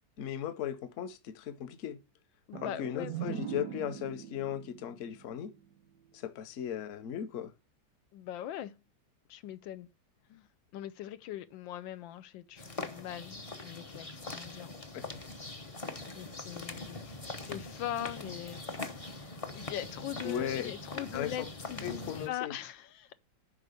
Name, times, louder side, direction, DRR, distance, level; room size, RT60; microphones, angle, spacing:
voice 1, 0.2-2.0 2.5-5.5 6.1-7.5 14.9-15.1 17.0-17.1 20.2-20.7 21.1-21.5 21.8-22.5, left 9 dB, 50° left, 1.0 m, -37 dB
voice 2, 2.5-3.4 8.1-8.8 9.3-9.9 10.3-10.5 10.7-14.7 16.1-23.2, left 12 dB, 90° left, 1.4 m, -41 dB
sound 1, 2.5-6.2, right 10 dB, 70° right, 0.9 m, -42 dB
sound 2, 12.6-22.3, left 2 dB, 30° left, 0.6 m, -42 dB
10.0 x 3.8 x 6.8 m
omnidirectional pair, 2.0 m